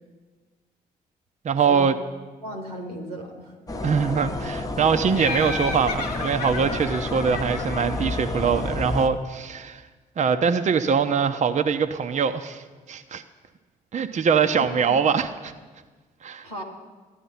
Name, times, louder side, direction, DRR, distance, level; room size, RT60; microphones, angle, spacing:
voice 1, 1.4-2.0 3.8-9.8 10.2-13.2 13.9-15.5 16.2-16.5, right 6 dB, 35° right, 8 dB, 0.7 m, -23 dB
voice 2, 2.4-3.8 4.9-5.2 14.5-15.0 16.4-16.6, equal, 90° right, 2 dB, 1.3 m, -36 dB
WT ambiente montaña Collserola, 3.7-9.1, left 2 dB, 20° left, 1.0 m, -30 dB
Laughter, 5.1-8.8, left 4 dB, 85° left, 0.9 m, -33 dB
14.0 x 10.0 x 5.6 m, 1.4 s
figure-of-eight pair, 40°, 20 cm